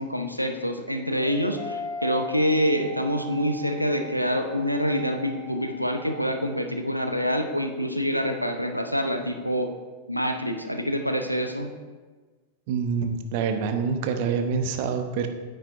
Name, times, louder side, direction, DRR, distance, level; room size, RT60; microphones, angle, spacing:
voice 1, 0.0-9.7 10.1-11.7, equal, 90° left, 6 dB, 0.7 m, -26 dB
sound 1, 1.1-6.2, equal, 45° left, 1.3 m, -39 dB
voice 2, 12.7-15.3, right 6 dB, 50° right, 6 dB, 0.9 m, -26 dB
9.6 x 9.0 x 2.6 m, 1.3 s
figure-of-eight pair, 90°, 0 cm